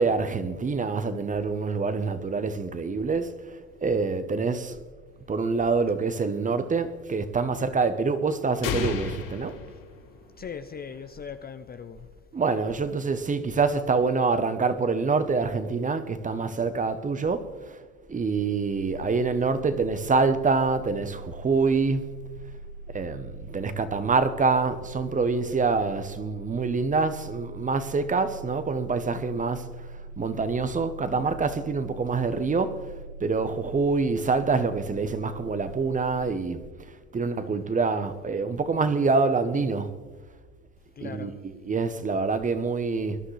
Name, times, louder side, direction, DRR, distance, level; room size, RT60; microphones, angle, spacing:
voice 1, 0.0-4.8 5.3-9.6 12.3-17.8 18.1-22.0 22.9-29.9 30.2-32.8 33.2-36.7 37.1-39.9 41.0-43.2, right 4 dB, 20° right, 0.9 m, -26 dB
sound 1, 8.6-10.5, left 6 dB, 50° left, 3.3 m, -32 dB
voice 2, 10.4-12.1 41.0-41.4, left 6 dB, 20° left, 0.6 m, -39 dB
sound 2, 18.3-36.2, right 2 dB, 60° right, 1.9 m, -42 dB
23.0 x 11.0 x 3.3 m
hypercardioid pair, 95°, 42 cm